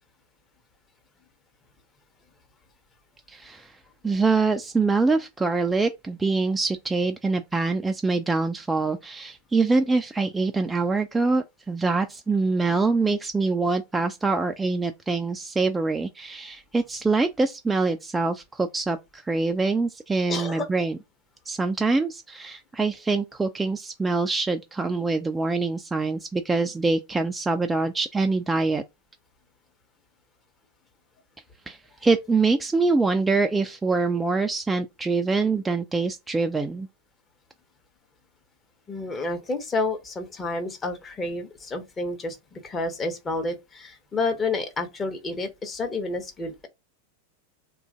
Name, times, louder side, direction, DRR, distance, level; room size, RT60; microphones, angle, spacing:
voice 1, 3.3-3.8 4.0-21.0 21.5-28.8 31.7-36.9, right 3 dB, 10° right, 0.4 m, -24 dB
voice 2, 20.3-20.7 38.9-46.7, left 3 dB, 20° left, 0.9 m, -30 dB
3.0 x 2.5 x 3.5 m
figure-of-eight pair, 90°, 0 cm